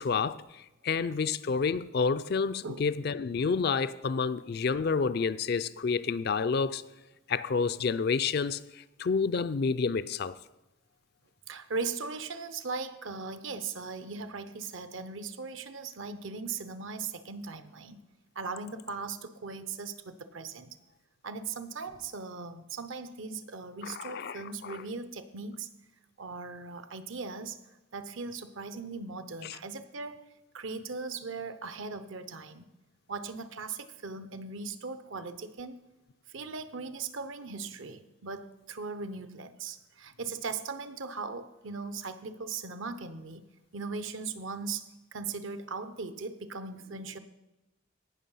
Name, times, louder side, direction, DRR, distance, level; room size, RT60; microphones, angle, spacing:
voice 1, 0.0-6.8 7.3-10.4 23.8-24.8 29.4-29.6, left 5 dB, 50° left, 0.4 m, -29 dB
voice 2, 11.5-18.0 18.3-20.8 21.2-25.7 26.2-27.6 27.9-30.2 30.5-32.6 33.1-35.8 36.3-43.4 43.7-47.2, right 4 dB, 70° right, 0.8 m, -39 dB
17.5 x 6.0 x 5.6 m
head